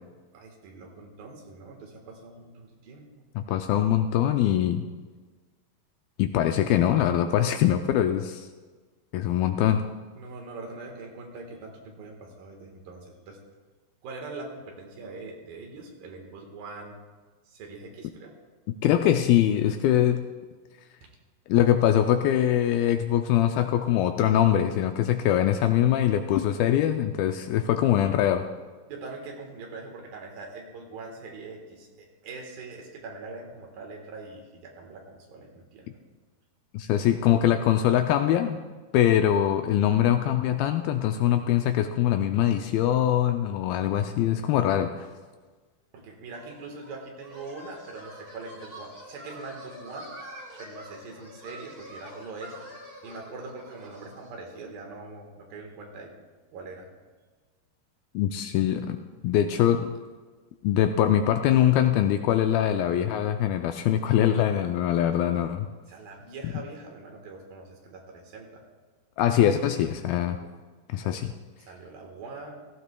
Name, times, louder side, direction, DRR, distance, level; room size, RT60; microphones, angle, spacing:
voice 1, 0.3-3.1 10.1-13.4 14.0-17.0 17.5-18.3 21.0-21.1 28.9-36.0 45.9-50.1 50.6-56.1 56.5-56.9 59.4-59.5 65.9-68.6 70.4-70.5 71.0-71.2 71.6-72.6, right 3 dB, 65° right, 2 dB, 3.0 m, -42 dB
voice 2, 3.4-4.9 6.2-8.5 9.1-9.8 18.8-20.3 21.5-28.5 36.7-38.6 38.9-45.1 58.2-59.0 59.2-59.9 60.6-65.7 69.2-70.4 70.9-71.3, left 11 dB, 80° left, 7 dB, 2.2 m, -23 dB
sound 1, 46.3-54.4, equal, 25° right, 1.2 m, -46 dB
17.5 x 15.0 x 2.3 m, 1.4 s
omnidirectional pair, 4.6 m